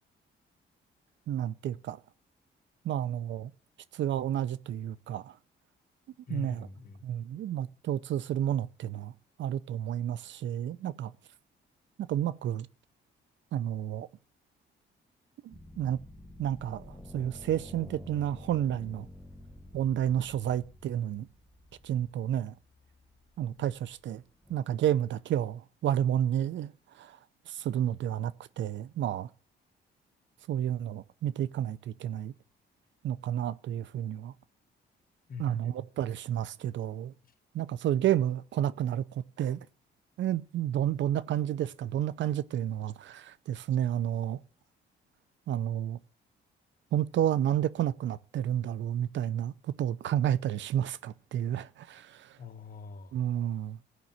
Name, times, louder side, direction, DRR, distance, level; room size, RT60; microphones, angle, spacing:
voice 1, 1.3-2.0 2.8-3.5 3.9-5.3 6.3-6.6 7.0-9.1 9.4-11.1 12.1-12.7 13.5-14.1 15.4-16.0 16.4-16.8 17.1-19.1 19.7-21.3 21.8-22.5 23.4-24.2 24.5-26.7 27.0-27.2 27.5-29.3 30.5-32.3 33.0-34.3 35.4-37.1 37.5-39.7 40.2-44.4 45.5-46.0 46.9-49.5 49.8-52.3 53.1-53.8, right 11 dB, 70° right, 0.6 m, -31 dB
voice 2, 6.3-7.0 23.6-23.7 35.3-35.7 37.2-37.3 52.4-53.2, left 6 dB, 45° left, 1.5 m, -43 dB
sound 1, 15.5-24.6, left 1 dB, 5° left, 1.1 m, -50 dB
14.5 x 5.4 x 7.4 m
cardioid pair, 90°, 20 cm